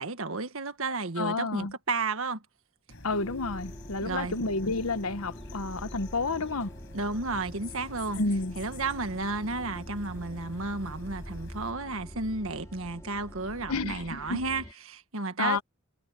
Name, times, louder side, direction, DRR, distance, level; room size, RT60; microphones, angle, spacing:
voice 1, 0.0-2.4 4.0-4.3 6.9-8.2 8.5-15.6, right 3 dB, 70° right, 1.7 m, -32 dB
voice 2, 1.2-1.7 3.0-6.7 8.2-8.5 13.7-14.4 15.4-15.6, left 3 dB, 80° left, 1.2 m, -30 dB
sound 1, 2.9-11.7, left 2 dB, 55° left, 7.1 m, -48 dB
sound 2, 3.1-14.7, equal, 15° left, 4.3 m, -45 dB
head